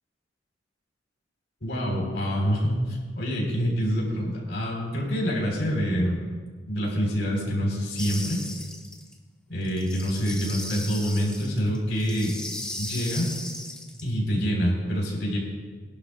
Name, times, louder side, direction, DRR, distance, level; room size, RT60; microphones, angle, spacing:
voice 1, 1.6-6.2 6.7-8.4 9.5-12.4 12.8-13.3 14.0-15.4, equal, 80° left, -2 dB, 4.0 m, -26 dB
sound 1, 8.0-9.1 9.6-14.0, left 1 dB, 5° left, 1.0 m, -37 dB
23.0 x 11.5 x 2.3 m, 1.5 s
head